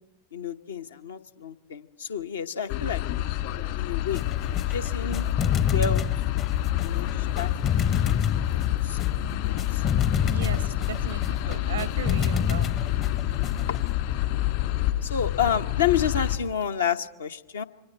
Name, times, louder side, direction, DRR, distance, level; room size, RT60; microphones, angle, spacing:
voice 1, 0.3-3.0 3.7-4.2 4.7-5.3 5.7-6.0 6.8-7.5 8.2-8.4 8.8-9.0 9.3-9.8 10.5-10.7 14.2-14.5 15.0-17.6, left 8 dB, 65° left, 8 dB, 0.9 m, -29 dB
sound 1, 2.7-16.4, left 13 dB, 50° left, 1.9 m, -27 dB
sound 2, 4.1-13.9, left 7 dB, 30° left, 0.8 m, -29 dB
voice 2, 10.2-12.8, right 8 dB, 65° right, 19 dB, 0.7 m, -37 dB
27.5 x 24.5 x 4.4 m, 0.96 s
figure-of-eight pair, 90°, 0 cm